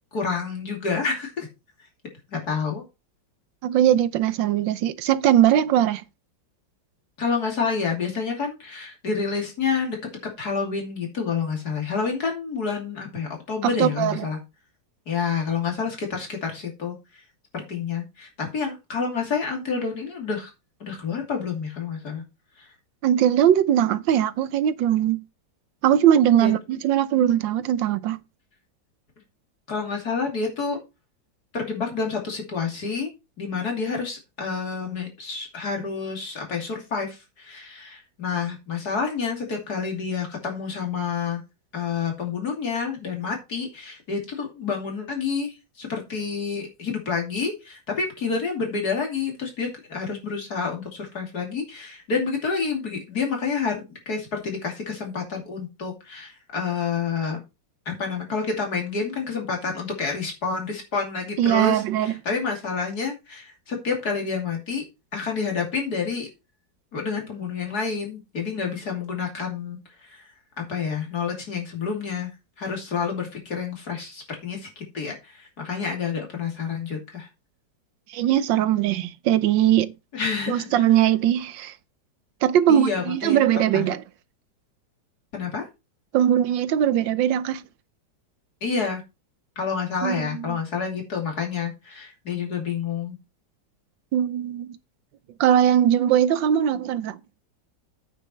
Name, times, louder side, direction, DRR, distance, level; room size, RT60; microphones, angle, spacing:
voice 1, 0.1-1.5 2.3-2.8 7.2-10.0 10.4-14.4 15.1-16.9 17.5-20.5 20.8-22.2 22.6-22.7 26.4-26.6 29.7-30.8 31.5-33.1 33.4-41.4 41.7-57.4 57.9-64.8 65.1-66.3 66.9-70.2 70.6-72.3 72.6-77.3 80.1-80.8 82.7-83.5 83.7-83.8 85.3-85.7 88.6-89.0 89.6-93.2, left 5 dB, 55° left, 3.3 m, -29 dB
voice 2, 3.6-6.0 13.6-14.3 23.0-25.2 25.8-28.2 61.4-62.1 78.1-79.9 80.5-81.7 82.4-84.0 86.1-87.6 90.0-90.6 94.1-94.8 95.4-97.2, right 10 dB, 85° right, 1.5 m, -20 dB
8.8 x 6.9 x 4.4 m
omnidirectional pair, 2.0 m